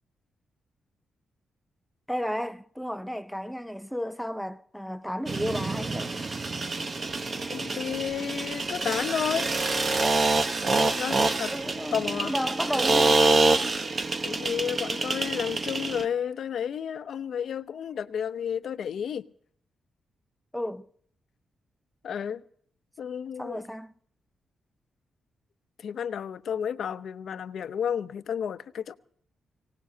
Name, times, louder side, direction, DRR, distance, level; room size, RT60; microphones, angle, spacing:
voice 1, 2.1-6.2 11.5-13.3 20.5-20.9 23.4-23.9, equal, ahead, 0.7 m, -33 dB
sound 1, 5.3-16.1, right 3 dB, 40° right, 1.0 m, -26 dB
voice 2, 7.5-9.5 10.8-11.5 11.9-12.3 14.2-19.2 22.0-22.4 23.0-23.6 25.8-28.9, left 8 dB, 70° left, 0.7 m, -31 dB
25.0 x 18.0 x 2.8 m
cardioid pair, 110°, 0 cm